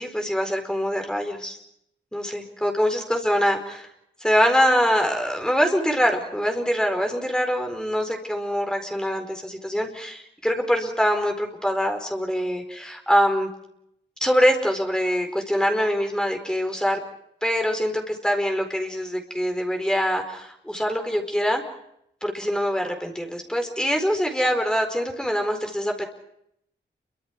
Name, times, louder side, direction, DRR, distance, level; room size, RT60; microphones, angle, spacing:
voice 1, 0.0-1.6 2.1-3.9 4.2-13.5 14.2-17.0 17.4-21.6 22.2-26.1, equal, 5° left, 4 dB, 4.4 m, -24 dB
29.5 x 24.5 x 4.7 m, 0.74 s
wide cardioid pair, 155°, 19 cm